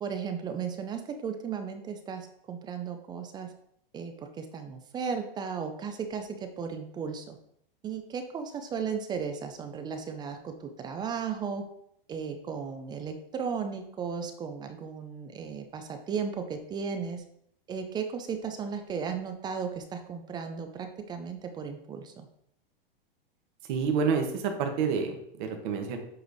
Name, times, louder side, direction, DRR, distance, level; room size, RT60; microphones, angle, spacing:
voice 1, 0.0-3.5 3.9-7.4 7.8-11.7 12.1-17.2 17.7-22.3, right 6 dB, 15° right, 7 dB, 0.4 m, -35 dB
voice 2, 23.7-26.0, right 5 dB, 50° right, 5 dB, 1.3 m, -28 dB
7.9 x 3.3 x 4.0 m, 0.73 s
hypercardioid pair, 130°, 30 cm